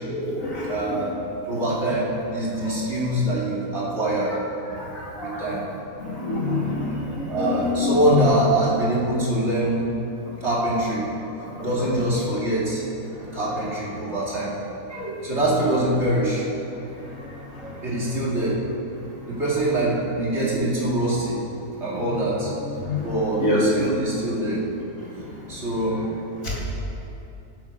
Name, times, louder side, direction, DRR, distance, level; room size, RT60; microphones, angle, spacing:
voice 1, 0.1-1.0 2.6-2.7 4.7-4.8 5.2-5.5 6.0-8.3 11.6-11.7 14.9-15.1 17.6-17.7 22.8-23.1 23.4-23.6 26.4-26.5, left 3 dB, 60° left, -5 dB, 2.8 m, -26 dB
voice 2, 0.7-1.1 1.5-4.4 4.6-4.9 5.2-5.6 7.3-9.8 10.4-11.0 11.6-12.8 13.3-14.5 15.2-16.4 17.8-18.6 19.3-21.4 21.8-22.5 23.0-24.6 25.5-26.1, right 1 dB, 45° right, -6 dB, 2.7 m, -24 dB
17.5 x 7.9 x 5.0 m, 2.9 s
omnidirectional pair, 1.6 m